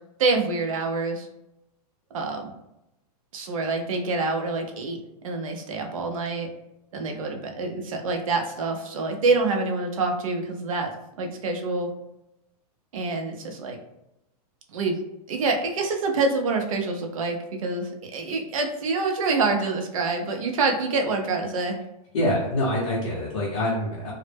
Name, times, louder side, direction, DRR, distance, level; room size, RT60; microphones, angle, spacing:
voice 1, 0.2-1.3 2.1-2.5 3.3-5.0 5.2-6.5 6.9-10.9 11.2-11.9 12.9-13.8 14.7-15.0 15.3-21.8, right 3 dB, 55° right, 3 dB, 0.5 m, -26 dB
voice 2, 22.1-24.1, left 1 dB, 50° left, -7 dB, 0.7 m, -25 dB
2.0 x 2.0 x 3.2 m, 0.88 s
hypercardioid pair, 175°, 21 cm